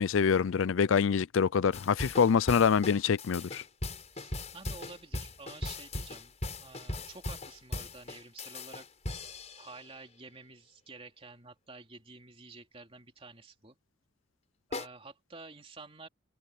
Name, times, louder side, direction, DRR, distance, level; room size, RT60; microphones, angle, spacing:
voice 1, 0.0-3.6, left 6 dB, 75° left, 0.4 m, -25 dB
sound 1, 1.7-9.9 14.7-14.9, left 2 dB, 35° left, 5.2 m, -39 dB
voice 2, 4.1-8.9 9.6-13.8 14.7-16.1, right 3 dB, 30° right, 3.1 m, -50 dB
head